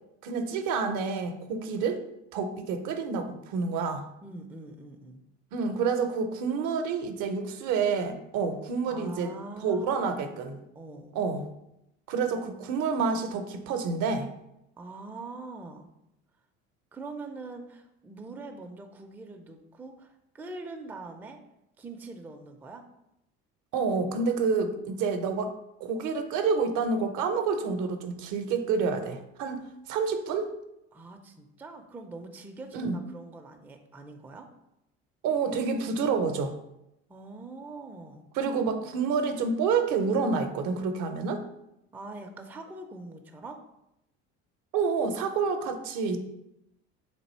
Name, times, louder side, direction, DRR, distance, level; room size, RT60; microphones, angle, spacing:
voice 1, 0.2-2.0 2.3-4.1 5.5-9.3 9.6-10.6 11.1-11.5 12.1-14.3 23.7-25.5 25.8-30.5 32.7-33.0 35.2-36.6 38.3-41.4 44.7-46.2, right 5 dB, 65° right, 8 dB, 0.6 m, -28 dB
voice 2, 4.2-5.2 8.9-10.4 10.7-11.2 12.3-12.5 14.8-15.9 16.9-21.4 21.8-22.8 30.9-34.5 37.1-38.3 41.9-43.6, right 3 dB, 5° right, 4 dB, 0.3 m, -43 dB
3.4 x 2.6 x 4.2 m, 0.85 s
supercardioid pair, 80°, 33 cm